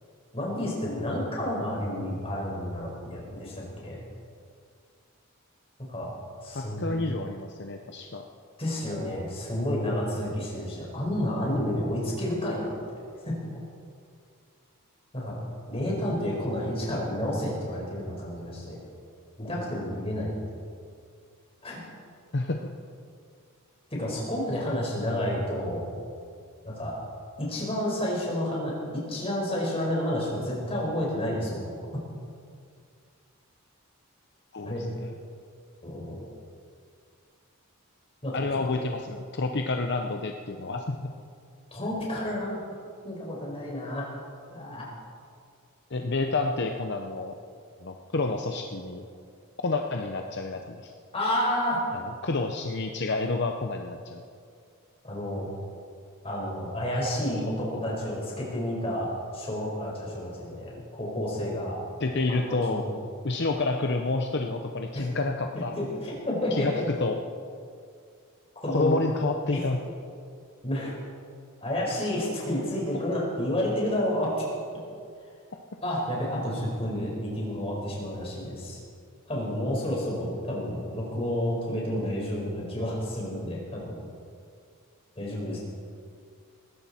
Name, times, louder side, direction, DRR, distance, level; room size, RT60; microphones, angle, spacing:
voice 1, 0.3-4.0 5.8-6.1 6.4-7.0 8.6-12.8 13.2-13.3 15.1-18.8 19.4-20.3 21.6-21.8 23.9-25.9 26.6-26.9 27.4-28.7 29.1-31.7 31.9-32.0 34.6-34.8 35.8-36.2 38.2-38.6 41.7-42.6 43.0-44.1 44.5-44.9 51.1-51.8 55.0-55.5 56.2-61.8 62.3-62.8 64.9-65.1 65.8-66.7 68.6-69.0 69.5-69.6 70.6-71.0 71.6-74.5 75.8-78.8 79.3-83.9 85.1-85.6, left 1 dB, 25° left, -3 dB, 4.9 m, -30 dB
voice 2, 6.5-8.3 22.3-22.7 34.5-35.1 38.3-41.1 45.9-47.4 47.8-49.0 49.6-50.9 51.9-54.2 62.0-62.8 63.2-65.7 66.5-67.2 68.7-69.8, left 3 dB, 50° left, 4 dB, 0.8 m, -29 dB
19.5 x 17.0 x 4.4 m, 2.3 s
head